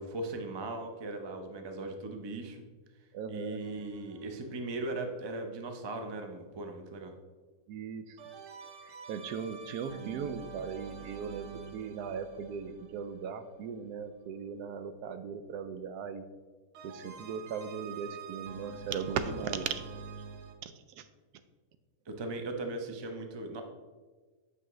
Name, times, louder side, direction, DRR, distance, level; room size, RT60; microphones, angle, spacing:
voice 1, 0.0-2.6 3.3-7.1 22.1-23.6, right 2 dB, 45° right, 4 dB, 0.3 m, -38 dB
voice 2, 3.1-3.6 7.7-8.2 8.8-16.2 16.8-19.8 20.6-21.1, right 6 dB, 85° right, 11 dB, 1.1 m, -38 dB
sound 1, 3.6-5.6 8.2-14.1 16.7-20.5, right 6 dB, 60° right, 1.0 m, -48 dB
8.3 x 5.7 x 3.0 m, 1.3 s
omnidirectional pair, 1.6 m